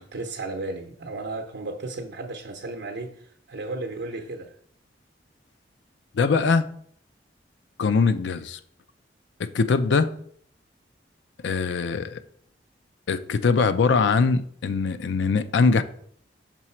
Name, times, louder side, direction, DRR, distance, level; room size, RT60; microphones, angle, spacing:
voice 1, 0.0-4.5, right 2 dB, 75° right, 0.7 m, -34 dB
voice 2, 6.1-6.7 7.8-8.6 9.4-10.1 11.4-12.2 13.1-15.8, left 4 dB, 80° left, 0.4 m, -22 dB
6.1 x 3.9 x 4.3 m
head